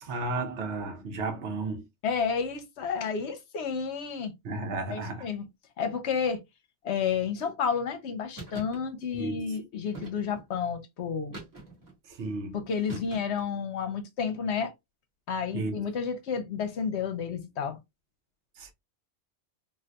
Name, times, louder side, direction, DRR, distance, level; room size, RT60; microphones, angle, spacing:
voice 1, 0.0-1.9 4.4-5.3 9.1-9.6 12.1-12.6 15.5-15.7 18.6-18.7, right 3 dB, 70° right, 1.0 m, -33 dB
voice 2, 2.0-4.3 4.9-5.5 5.8-6.4 6.8-11.4 12.5-14.7 15.3-17.8, left 6 dB, 65° left, 0.9 m, -31 dB
sound 1, 8.4-8.8 9.9-10.5 11.3-11.9 12.9-13.5, right 2 dB, 15° right, 1.5 m, -43 dB
3.8 x 2.5 x 2.2 m
omnidirectional pair, 1.3 m